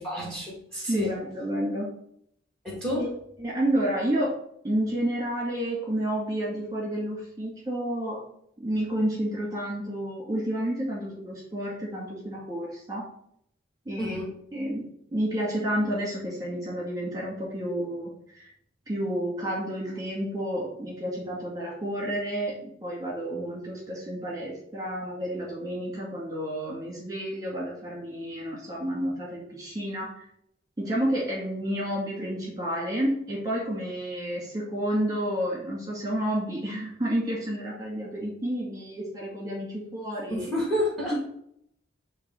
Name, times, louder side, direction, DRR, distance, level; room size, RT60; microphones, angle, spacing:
voice 1, 0.0-1.1 2.6-3.1 14.0-14.3 40.3-41.2, left 1 dB, 5° left, -3 dB, 1.6 m, -29 dB
voice 2, 0.9-1.9 2.9-3.1 3.4-4.3 4.6-8.2 8.6-13.0 13.9-14.3 14.5-18.5 18.9-30.3 30.8-40.5 41.1-41.2, right 1 dB, 20° right, -4 dB, 1.8 m, -30 dB
8.3 x 3.0 x 4.3 m, 0.71 s
head